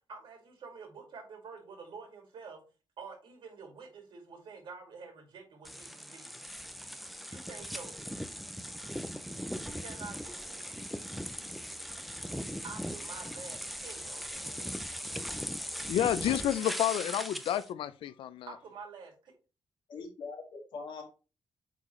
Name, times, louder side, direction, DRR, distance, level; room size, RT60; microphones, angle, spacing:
voice 1, 0.1-2.6 3.0-6.4 7.3-8.1 9.7-10.5 12.6-14.5 18.5-19.3, right 5 dB, 70° right, 2.4 m, -48 dB
sound 1, 5.6-17.7, equal, ahead, 0.4 m, -39 dB
voice 2, 15.9-18.5, left 11 dB, 85° left, 0.4 m, -30 dB
voice 3, 19.9-21.0, left 4 dB, 65° left, 2.1 m, -42 dB
8.2 x 4.0 x 3.1 m
wide cardioid pair, 170°, 9 cm